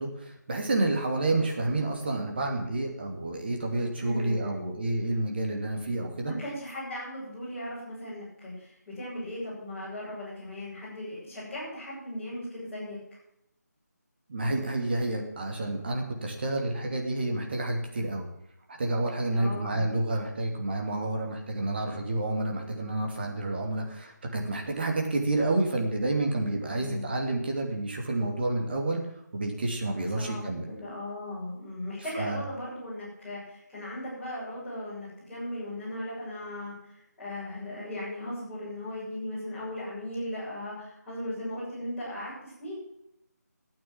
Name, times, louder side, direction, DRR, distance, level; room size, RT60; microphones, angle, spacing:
voice 1, 0.0-6.3 14.3-18.3 18.8-29.0 29.3-30.6 32.1-32.4, right 2 dB, 35° right, 2 dB, 2.8 m, -29 dB
voice 2, 4.0-4.7 6.3-13.0 19.3-19.8 26.7-27.0 29.9-42.8, left 1 dB, 5° left, -12 dB, 7.5 m, -37 dB
12.5 x 9.1 x 7.6 m, 0.79 s
figure-of-eight pair, 160°, 10 cm